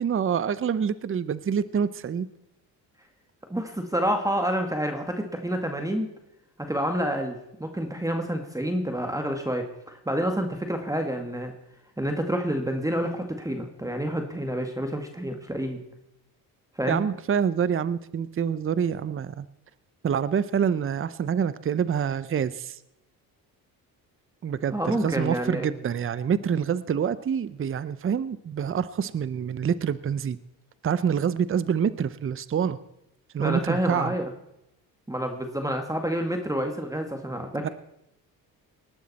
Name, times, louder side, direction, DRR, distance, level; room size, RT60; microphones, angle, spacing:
voice 1, 0.0-2.3 16.9-19.5 20.0-22.8 24.4-30.4 30.8-32.8 33.3-34.1 37.6-37.7, right 7 dB, 35° right, 16 dB, 0.7 m, -26 dB
voice 2, 3.5-6.1 6.6-11.5 12.0-15.8 16.8-17.0 24.7-25.7 33.4-34.3 35.1-37.7, equal, 10° right, 4 dB, 1.8 m, -28 dB
19.5 x 12.0 x 4.2 m, 0.84 s
cardioid pair, 85°, 38 cm